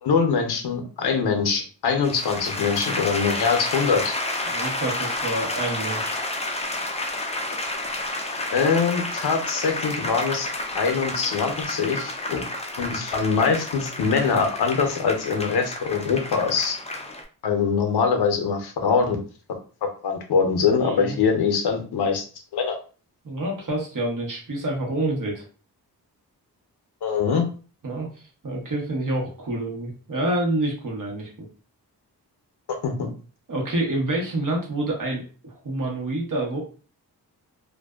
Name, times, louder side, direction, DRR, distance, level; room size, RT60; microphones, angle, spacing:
voice 1, 0.0-4.1 8.5-10.5 10.7-12.4 12.8-16.8 17.4-19.2 19.8-22.3 22.5-22.8 27.0-27.5 32.7-33.1, left 5 dB, 80° left, 4 dB, 0.7 m, -23 dB
sound 1, 2.0-17.2, left 2 dB, 15° left, 0.4 m, -30 dB
voice 2, 4.4-6.2 20.8-21.2 23.2-25.4 27.8-28.1 28.4-31.5 33.5-36.6, right 1 dB, 55° right, -1 dB, 1.0 m, -27 dB
2.5 x 2.2 x 2.3 m, 0.38 s
cardioid pair, 60°, 39 cm